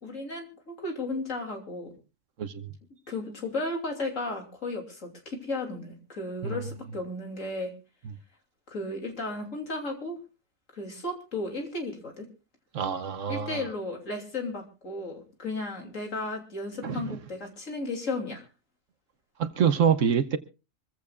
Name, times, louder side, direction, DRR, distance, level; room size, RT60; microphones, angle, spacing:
voice 1, 0.0-1.9 3.1-7.7 8.7-10.2 10.7-12.3 13.3-18.5, left 2 dB, 70° left, 3.4 m, -34 dB
voice 2, 2.4-2.7 6.4-6.6 12.7-13.6 16.8-17.0 19.4-20.4, right 7 dB, 70° right, 1.2 m, -26 dB
25.0 x 15.0 x 2.4 m
omnidirectional pair, 1.4 m